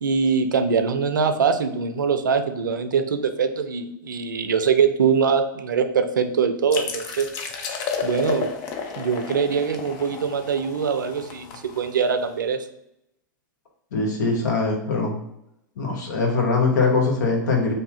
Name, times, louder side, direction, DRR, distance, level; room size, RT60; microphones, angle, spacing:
voice 1, 0.0-7.3 8.0-8.5 9.0-12.7, right 6 dB, 70° right, 8 dB, 0.4 m, -23 dB
sound 1, 6.7-12.2, left 5 dB, 40° left, 0.6 m, -32 dB
voice 2, 13.9-15.2 15.8-17.7, left 3 dB, 65° left, 1 dB, 1.0 m, -22 dB
2.7 x 2.6 x 3.8 m, 0.83 s
figure-of-eight pair, 100°, 11 cm